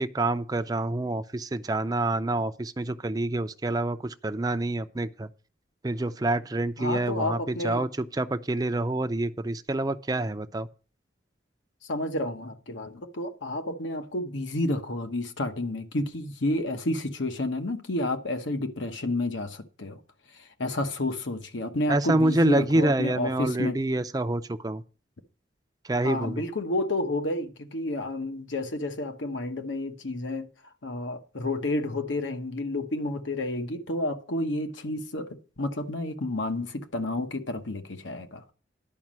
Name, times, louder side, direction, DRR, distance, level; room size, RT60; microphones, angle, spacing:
voice 1, 0.0-5.3 5.8-10.7 21.9-24.8 25.8-26.4, right 2 dB, 20° right, 0.5 m, -27 dB
voice 2, 6.8-7.8 11.9-20.0 20.3-23.8 26.0-30.5 30.8-35.3 35.6-38.4, left 1 dB, 80° left, 1.1 m, -30 dB
11.0 x 5.2 x 7.4 m
head